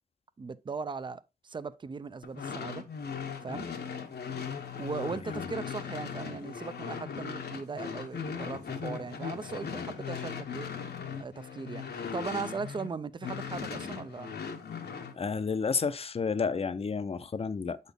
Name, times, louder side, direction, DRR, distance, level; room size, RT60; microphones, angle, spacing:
voice 1, 0.4-2.8 3.4-3.7 4.8-10.7 11.2-14.3, right 4 dB, 30° right, 0.4 m, -38 dB
sound 1, 2.2-12.9 13.2-15.1, left 6 dB, 80° left, 1.0 m, -38 dB
voice 2, 15.1-17.8, left 5 dB, 35° left, 0.5 m, -31 dB
8.0 x 4.1 x 3.4 m
wide cardioid pair, 135°, 16 cm